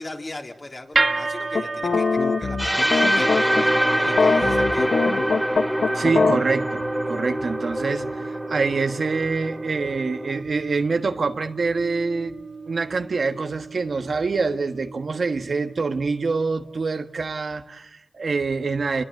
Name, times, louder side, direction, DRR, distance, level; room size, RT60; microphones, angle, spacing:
voice 1, 0.0-4.9, left 2 dB, 45° left, 2 dB, 3.5 m, -38 dB
sound 1, 0.9-17.2, right 3 dB, 55° right, 1.2 m, -33 dB
sound 2, 1.5-3.6 4.1-6.4, left 4 dB, 85° left, 1.1 m, -22 dB
sound 3, 2.6-10.4, equal, ahead, 2.5 m, -25 dB
voice 2, 5.9-12.4 12.7-19.0, right 4 dB, 75° right, 7 dB, 1.4 m, -25 dB
29.0 x 21.5 x 7.8 m, 0.92 s
cardioid pair, 55°, 0 cm